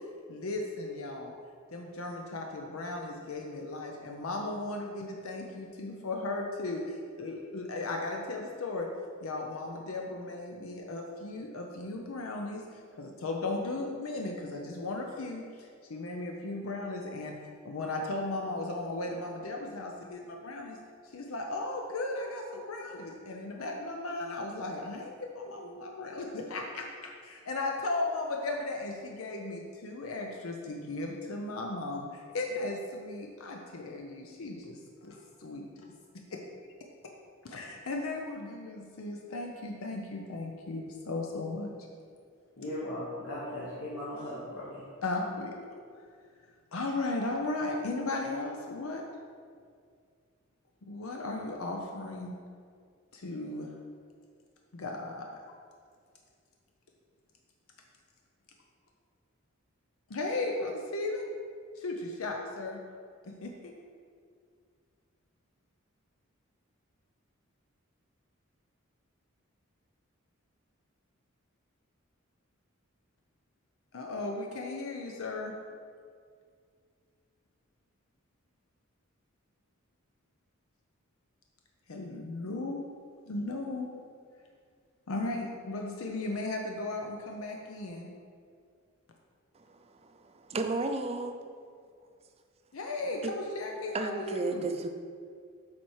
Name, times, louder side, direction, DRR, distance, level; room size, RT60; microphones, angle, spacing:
voice 1, 0.3-1.3 1.7-8.9 9.2-12.6 13.0-17.4 17.6-20.8 21.1-35.9 36.3-36.4 37.4-41.8 45.0-45.8 46.7-49.0 50.8-52.3 53.1-53.7 54.7-55.3 60.1-61.2 61.8-62.8 63.2-63.7 73.9-75.6 81.9-82.8 83.3-83.9 85.1-88.1 92.7-94.7, left 2 dB, 90° left, 1 dB, 0.6 m, -36 dB
voice 2, 42.6-44.8, left 1 dB, 70° left, -9 dB, 1.5 m, -38 dB
voice 3, 89.5-91.4 93.2-93.3 93.9-94.9, right 3 dB, 30° right, 6 dB, 0.4 m, -34 dB
7.4 x 4.4 x 4.7 m, 2.1 s
head